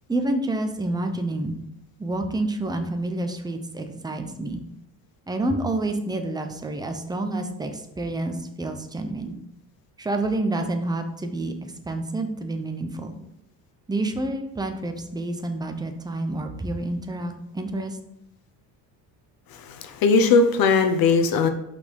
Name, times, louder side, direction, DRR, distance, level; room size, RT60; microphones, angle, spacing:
voice 1, 0.1-1.5 2.0-4.6 5.3-9.3 10.0-13.2 13.9-18.0, right 2 dB, 10° right, 5 dB, 0.7 m, -28 dB
voice 2, 19.7-21.5, left 4 dB, 60° left, 8 dB, 1.0 m, -19 dB
5.6 x 4.5 x 5.2 m, 0.80 s
cardioid pair, 115°, 40 cm